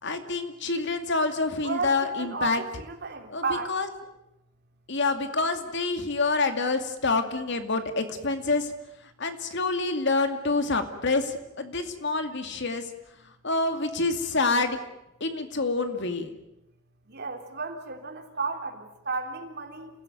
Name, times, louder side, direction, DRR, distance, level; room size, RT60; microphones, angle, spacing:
voice 1, 0.0-2.6 3.3-3.9 4.9-8.7 9.2-12.9 13.4-14.8 15.2-16.3, left 3 dB, 60° left, 7 dB, 2.4 m, -27 dB
voice 2, 1.6-3.7 5.6-5.7 17.1-19.9, right 4 dB, 55° right, 4 dB, 3.4 m, -33 dB
28.5 x 16.5 x 9.3 m, 0.88 s
head